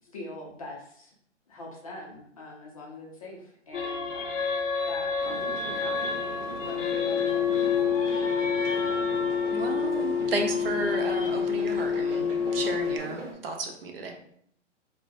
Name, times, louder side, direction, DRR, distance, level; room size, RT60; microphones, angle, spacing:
voice 1, 0.0-1.1 1.5-4.4 4.9-6.1 6.6-8.8, left 2 dB, 30° left, -3 dB, 0.5 m, -43 dB
sound 1, 3.7-13.0, left 6 dB, 80° left, 0.7 m, -28 dB
sound 2, 5.2-13.3, right 1 dB, 70° right, 1.0 m, -41 dB
voice 2, 9.5-14.1, right 3 dB, 50° right, 4 dB, 0.5 m, -33 dB
3.1 x 2.1 x 2.7 m, 0.66 s
hypercardioid pair, 150°, 37 cm